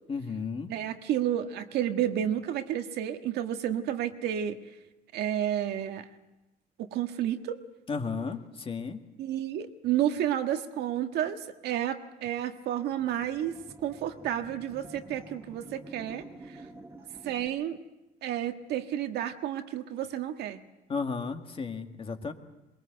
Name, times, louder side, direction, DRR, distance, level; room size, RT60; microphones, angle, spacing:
voice 1, 0.1-0.7 7.9-9.0 20.9-22.3, left 5 dB, 35° left, 6 dB, 1.9 m, -33 dB
voice 2, 0.7-4.6 5.1-6.1 6.8-7.6 9.2-16.6 17.2-17.8 18.2-20.6, right 11 dB, 75° right, 6 dB, 1.6 m, -31 dB
sound 1, 12.7-17.5, right 2 dB, 15° right, 2.3 m, -49 dB
22.0 x 21.5 x 8.0 m, 0.98 s
cardioid pair, 110°, 17 cm